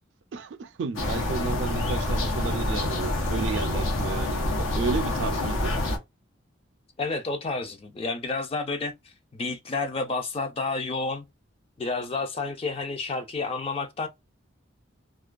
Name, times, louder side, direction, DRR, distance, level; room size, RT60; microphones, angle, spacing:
voice 1, 0.3-5.8, right 5 dB, 65° right, 0.4 m, -32 dB
sound 1, 0.9-6.0, left 1 dB, 90° left, 0.8 m, -27 dB
voice 2, 7.0-11.3 11.8-14.1, left 3 dB, 30° left, 0.4 m, -30 dB
2.3 x 2.2 x 2.4 m
head